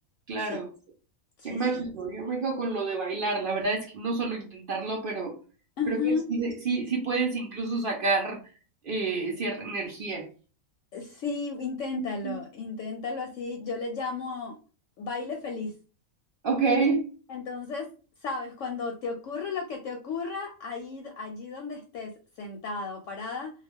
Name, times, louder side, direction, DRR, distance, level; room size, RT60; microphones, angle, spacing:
voice 1, 0.3-0.7 1.4-5.3 5.9-8.4 8.8-10.3 12.0-12.3 16.4-17.1, right 4 dB, 60° right, 0 dB, 0.5 m, -29 dB
voice 2, 1.4-1.8 5.8-6.2 10.9-14.6 15.0-15.7 17.3-17.9 18.2-22.1 22.4-23.5, left 4 dB, 70° left, 3 dB, 0.9 m, -33 dB
2.3 x 2.2 x 3.4 m, 0.36 s
omnidirectional pair, 1.5 m